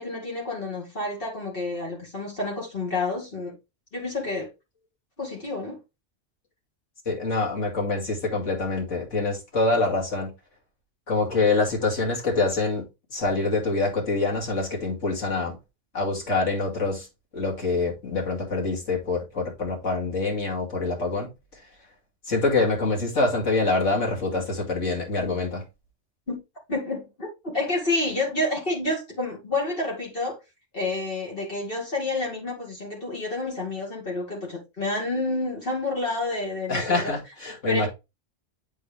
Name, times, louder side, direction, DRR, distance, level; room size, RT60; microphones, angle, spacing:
voice 1, 0.0-3.5 3.9-4.5 5.2-5.8 26.3-26.4 26.7-30.4 30.7-37.2 37.7-37.9, left 2 dB, 45° left, 2.5 m, -29 dB
voice 2, 7.1-10.3 11.1-12.8 13.1-15.6 15.9-17.1 17.3-21.3 22.3-25.6 36.7-37.9, left 3 dB, 75° left, 2.8 m, -25 dB
8.4 x 4.1 x 3.4 m
omnidirectional pair, 1.3 m